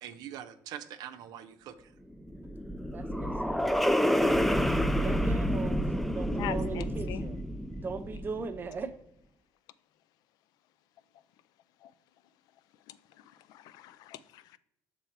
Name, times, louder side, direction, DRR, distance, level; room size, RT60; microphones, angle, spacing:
voice 1, 0.0-1.9, right 10 dB, 65° right, 0.6 m, -43 dB
sound 1, 2.1-8.6, equal, ahead, 0.3 m, -29 dB
voice 2, 2.9-4.2 4.9-7.4 7.8-8.9, right 4 dB, 30° right, 0.7 m, -39 dB
voice 3, 6.3-7.3 11.8-11.9 12.9-14.6, left 12 dB, 70° left, 0.4 m, -42 dB
6.5 x 3.4 x 4.6 m
cardioid pair, 110°, 7 cm